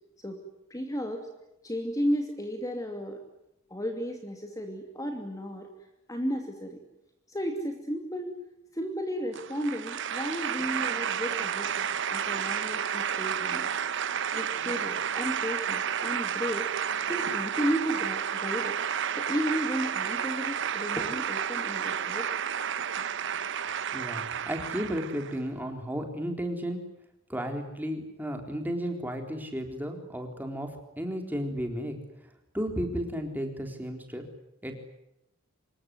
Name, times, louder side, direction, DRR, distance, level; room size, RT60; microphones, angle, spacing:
voice 1, 0.7-1.3 1.6-3.2 3.7-5.7 6.1-6.8 7.3-8.3 8.7-13.7 14.3-16.7 17.1-18.8 19.1-22.3, equal, 15° left, 4 dB, 2.6 m, -33 dB
sound 1, 9.3-25.4, right 8 dB, 55° right, 1.0 m, -31 dB
voice 2, 23.9-26.8 27.3-30.7 31.0-32.0 32.5-34.2 34.6-34.7, equal, 10° right, 4 dB, 3.9 m, -33 dB
26.0 x 22.5 x 9.7 m, 0.85 s
head